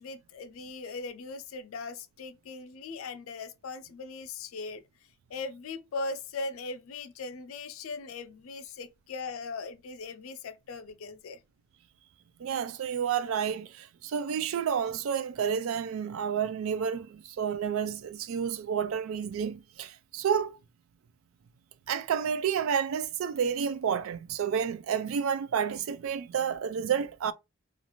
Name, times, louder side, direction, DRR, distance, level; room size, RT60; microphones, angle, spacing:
voice 1, 0.0-4.8 5.3-11.4, left 3 dB, 80° left, 0.4 m, -39 dB
voice 2, 12.4-20.6 21.9-27.3, right 7 dB, 80° right, 0.3 m, -30 dB
2.5 x 2.4 x 2.9 m
head